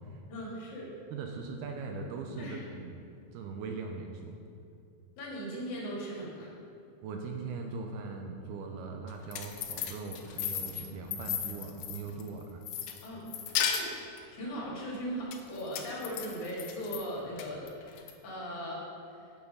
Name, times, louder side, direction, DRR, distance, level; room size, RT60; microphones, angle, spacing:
voice 1, 0.3-0.9 2.4-2.6 5.2-6.5 13.0-13.3 13.7-13.8 14.3-18.8, equal, 50° left, -6 dB, 3.1 m, -38 dB
voice 2, 1.1-3.0 3.3-4.3 7.0-12.6, right 4 dB, 80° right, 3 dB, 2.3 m, -40 dB
sound 1, 9.1-12.3 12.7-14.2 15.3-17.0 17.4-18.1, left 9 dB, 85° left, 2.8 m, -35 dB
8.3 x 7.2 x 5.5 m, 2.5 s
omnidirectional pair, 5.0 m